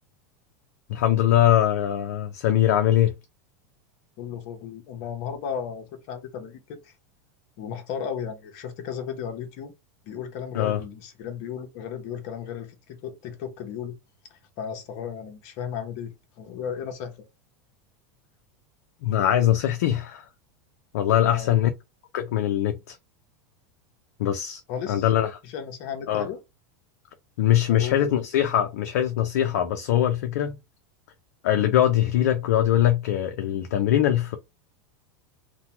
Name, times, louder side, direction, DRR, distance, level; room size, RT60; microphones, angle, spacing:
voice 1, 0.9-3.1 10.5-10.8 19.0-20.3 20.9-21.7 22.1-23.0 24.2-24.6 24.9-25.3 26.1-26.3 27.4-30.6 31.4-34.4, left 11 dB, 75° left, 0.5 m, -22 dB
voice 2, 4.2-7.0 7.6-9.7 10.0-13.9 14.3-17.2 21.2-21.6 24.7-25.1 25.4-26.4 27.7-28.1, left 7 dB, 55° left, 0.9 m, -35 dB
2.8 x 2.2 x 2.8 m
supercardioid pair, 115°, 9 cm